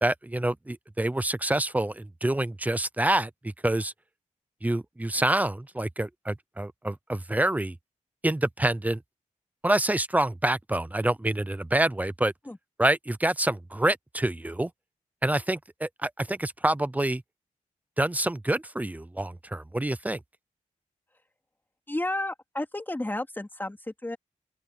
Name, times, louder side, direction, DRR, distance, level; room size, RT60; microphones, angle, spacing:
voice 1, 0.0-3.9 4.6-7.7 8.2-9.0 9.6-12.3 12.8-14.7 15.2-17.2 18.0-20.2, right 1 dB, 10° right, 0.7 m, -27 dB
voice 2, 21.9-24.2, left 1 dB, 15° left, 3.6 m, -32 dB
open air
wide cardioid pair, 95°, 13 cm